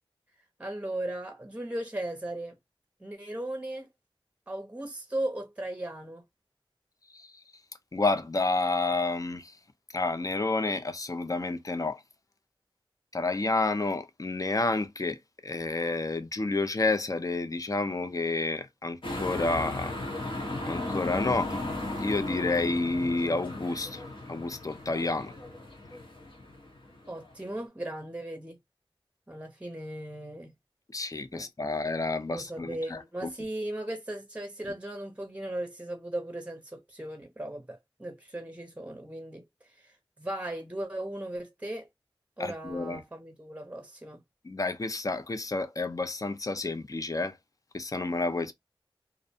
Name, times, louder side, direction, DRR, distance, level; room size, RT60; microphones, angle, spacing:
voice 1, 0.6-2.6 3.0-3.9 4.5-6.2 27.1-28.6 29.3-30.5 31.3-31.5 32.3-39.4 39.8-41.9 42.4-44.2, right 1 dB, 15° right, 0.7 m, -37 dB
voice 2, 7.9-9.5 9.9-12.0 13.1-19.9 20.7-21.6 22.0-24.0 24.3-25.3 30.9-33.3 42.4-43.0 44.4-47.4 47.7-48.5, left 3 dB, 40° left, 0.5 m, -30 dB
sound 1, 19.0-27.5, left 2 dB, 70° left, 1.0 m, -36 dB
2.5 x 2.1 x 2.6 m
wide cardioid pair, 40°, 9 cm